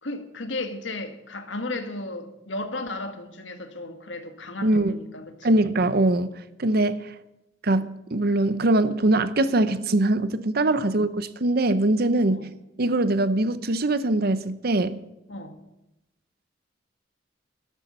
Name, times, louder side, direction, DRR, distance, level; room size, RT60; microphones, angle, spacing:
voice 1, 0.0-5.6 10.8-11.0 12.3-12.5 15.3-15.6, left 2 dB, 80° left, 1.7 m, -35 dB
voice 2, 4.6-5.0 5.4-6.3 6.6-7.1 7.6-12.4 12.8-15.0, right 2 dB, 55° right, 0.8 m, -22 dB
13.0 x 12.5 x 5.6 m
head